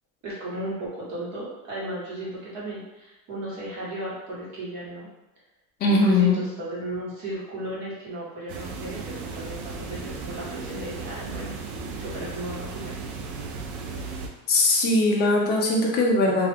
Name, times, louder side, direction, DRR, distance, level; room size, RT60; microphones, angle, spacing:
voice 1, 0.2-5.1 5.9-11.6 12.0-12.9, right 1 dB, 40° right, -7 dB, 1.2 m, -35 dB
voice 2, 5.8-6.4 14.5-16.5, left 2 dB, 25° left, -2 dB, 0.4 m, -20 dB
sound 1, 8.5-14.3, right 4 dB, 70° right, 0.6 m, -35 dB
2.4 x 2.2 x 3.3 m, 1.0 s
cardioid pair, 160°, 42 cm